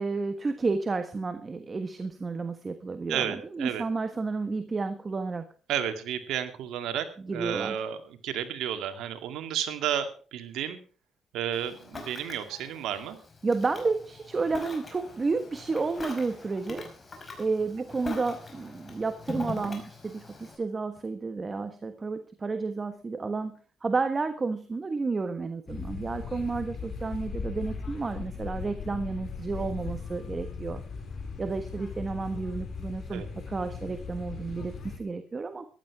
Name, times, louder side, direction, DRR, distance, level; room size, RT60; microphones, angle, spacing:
voice 1, 0.0-5.4 7.2-7.8 13.4-16.9 17.4-30.8 31.4-35.6, right 4 dB, 30° right, 9 dB, 1.4 m, -31 dB
voice 2, 3.1-3.8 5.7-10.8 11.3-13.2 33.1-33.3, right 9 dB, 85° right, 8 dB, 2.1 m, -32 dB
Ocean, 11.5-20.6, left 3 dB, 30° left, 5.2 m, -42 dB
sound 1, 25.7-35.0, left 5 dB, 55° left, 4.2 m, -38 dB
15.0 x 12.0 x 4.8 m, 0.38 s
cardioid pair, 90°, 0 cm